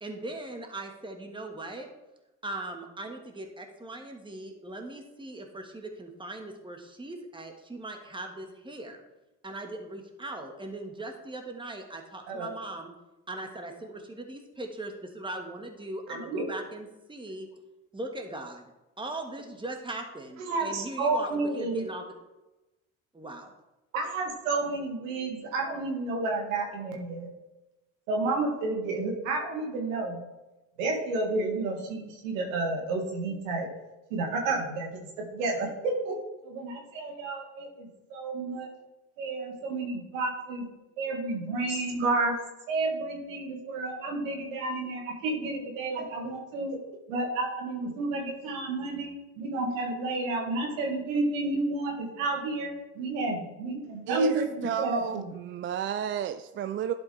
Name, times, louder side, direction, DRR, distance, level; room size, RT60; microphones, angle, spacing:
voice 1, 0.0-1.9 2.4-9.0 9.4-12.9 13.3-17.5 17.9-22.1 23.1-23.5, right 2 dB, 10° right, 3 dB, 1.5 m, -39 dB
voice 2, 16.1-16.5 20.4-21.8 23.9-27.3 28.1-30.2 30.8-33.7 34.1-34.9 35.2-36.1 36.4-38.7 39.2-40.7 41.0-42.3 42.7-46.8 47.1-55.2, right 2 dB, 80° right, 1 dB, 1.6 m, -31 dB
voice 3, 54.1-56.9, right 9 dB, 35° right, 10 dB, 0.4 m, -32 dB
11.0 x 5.1 x 3.3 m, 1.0 s
hypercardioid pair, 60°, 39 cm